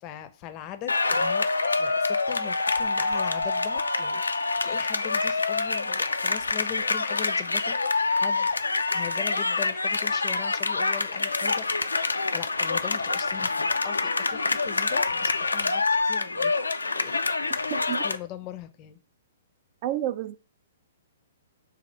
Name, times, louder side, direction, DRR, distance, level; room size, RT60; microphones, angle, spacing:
voice 1, 0.0-8.5 8.9-11.7 12.0-16.6 16.9-17.2 17.5-19.0, left 10 dB, 30° left, 0.6 m, -40 dB
sound 1, 0.9-18.2, left 3 dB, 80° left, 0.3 m, -26 dB
voice 2, 19.8-20.4, right 12 dB, 40° right, 0.4 m, -29 dB
4.1 x 2.4 x 4.7 m
figure-of-eight pair, 120°, 0 cm